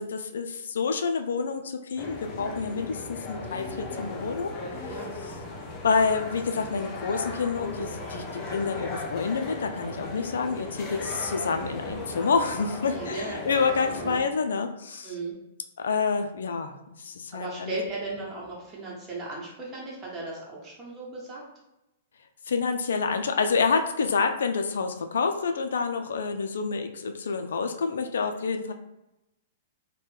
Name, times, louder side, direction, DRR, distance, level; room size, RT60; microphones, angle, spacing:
voice 1, 0.0-4.5 5.8-15.1 15.8-16.7 17.0-17.8 22.5-28.7, left 5 dB, 75° left, 6 dB, 0.4 m, -28 dB
sound 1, 2.0-14.2, left 2 dB, 25° left, 0.7 m, -37 dB
voice 2, 12.8-13.6 13.9-14.2 15.0-15.3 17.3-21.4, right 3 dB, 25° right, -4 dB, 1.2 m, -36 dB
3.1 x 2.1 x 3.4 m, 0.92 s
hypercardioid pair, 115°, 0 cm